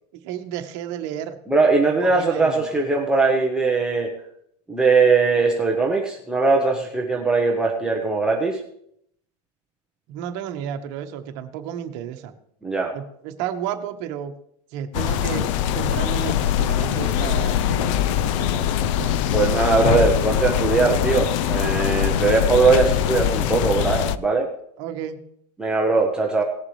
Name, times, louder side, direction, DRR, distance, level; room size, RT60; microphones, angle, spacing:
voice 1, 0.2-1.4 2.0-2.7 10.1-12.3 12.9-14.4 14.7-19.2 22.0-22.4 24.8-25.2, right 10 dB, 45° right, 6 dB, 1.4 m, -32 dB
voice 2, 1.5-4.1 4.7-8.6 12.6-12.9 19.3-24.5 25.6-26.4, right 4 dB, 5° right, -1 dB, 0.9 m, -20 dB
sound 1, 14.9-24.2, left 10 dB, 50° left, 0.5 m, -22 dB
18.5 x 7.3 x 3.2 m, 0.71 s
supercardioid pair, 160°, 21 cm